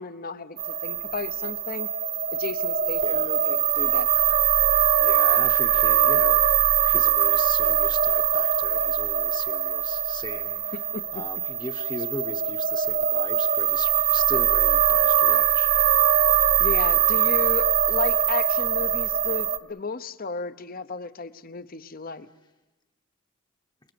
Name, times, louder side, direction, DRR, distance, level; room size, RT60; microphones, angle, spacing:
voice 1, 0.0-1.9 2.3-4.1 10.7-11.2 16.6-22.3, left 4 dB, 45° left, 14 dB, 0.9 m, -34 dB
sound 1, 0.6-19.6, right 9 dB, 45° right, 1.0 m, -22 dB
voice 2, 3.0-3.3 5.0-6.4 6.8-10.8 11.1-15.7, left 2 dB, 20° left, 6 dB, 1.0 m, -39 dB
29.0 x 21.0 x 6.9 m, 1.1 s
head